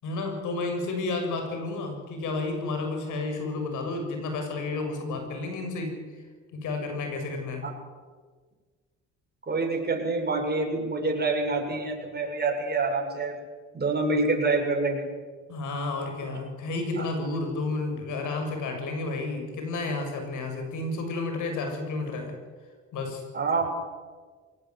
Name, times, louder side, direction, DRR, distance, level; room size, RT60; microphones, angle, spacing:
voice 1, 0.0-6.0 6.5-7.7 15.5-22.3 22.9-23.2, left 3 dB, 85° left, 4 dB, 7.0 m, -31 dB
voice 2, 9.5-13.4 13.7-15.1 16.3-16.4 17.0-17.1 23.3-23.7, right 3 dB, 35° right, 1 dB, 7.2 m, -27 dB
23.0 x 18.5 x 9.7 m, 1.5 s
cardioid pair, 90°, 30 cm